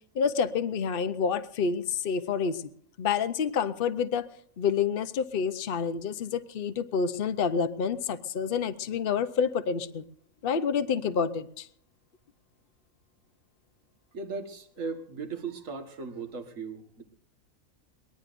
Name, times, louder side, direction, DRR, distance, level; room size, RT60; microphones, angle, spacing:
voice 1, 0.1-2.6 3.0-4.3 4.6-10.0 10.4-11.7, left 6 dB, 45° left, 11 dB, 0.9 m, -28 dB
voice 2, 14.1-17.0, right 4 dB, 60° right, 5 dB, 2.0 m, -37 dB
23.0 x 20.0 x 2.6 m, 0.62 s
omnidirectional pair, 1.5 m